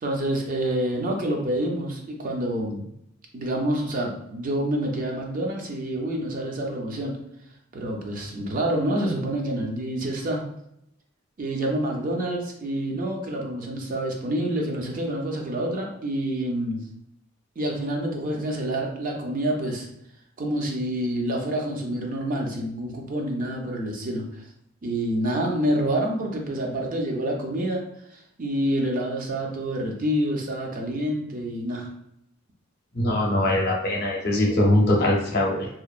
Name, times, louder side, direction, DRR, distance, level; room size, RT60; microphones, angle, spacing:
voice 1, 0.0-2.9 3.3-7.2 7.7-10.4 11.4-16.8 17.6-19.9 20.4-24.4 24.8-27.9 28.1-31.9, right 1 dB, 45° right, 1 dB, 0.5 m, -27 dB
voice 2, 32.9-35.7, left 1 dB, 55° left, -1 dB, 0.6 m, -22 dB
2.8 x 2.0 x 2.3 m, 0.76 s
head